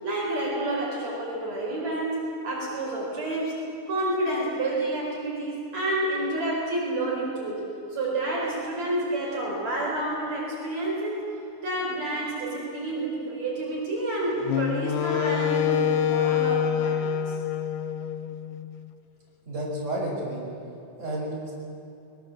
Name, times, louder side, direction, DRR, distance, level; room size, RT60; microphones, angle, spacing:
voice 1, 0.0-3.5 3.9-7.7 7.9-11.3 11.6-17.4, right 1 dB, 60° right, -3 dB, 6.0 m, -29 dB
Wind instrument woodwind instrument, 14.5-18.7, left 9 dB, 90° left, 2.4 m, -26 dB
voice 2, 19.5-20.4 21.0-21.5, right 1 dB, 20° right, -4 dB, 6.0 m, -31 dB
23.0 x 21.5 x 7.6 m, 2.7 s
omnidirectional pair, 3.6 m